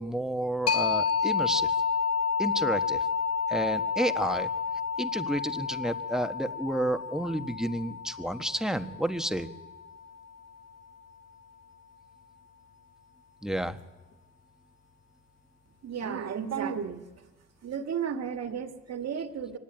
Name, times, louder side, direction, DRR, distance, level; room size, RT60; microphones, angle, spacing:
voice 1, 0.0-1.7 2.4-3.1 3.5-4.5 5.0-9.5 13.4-13.8, right 1 dB, ahead, 8 dB, 1.3 m, -30 dB
sound 1, 0.7-10.1, left 6 dB, 55° left, 1.6 m, -30 dB
voice 2, 15.8-17.0 17.6-19.6, right 7 dB, 55° right, 7 dB, 2.2 m, -33 dB
24.5 x 19.5 x 9.1 m, 1.2 s
cardioid pair, 90°, 30 cm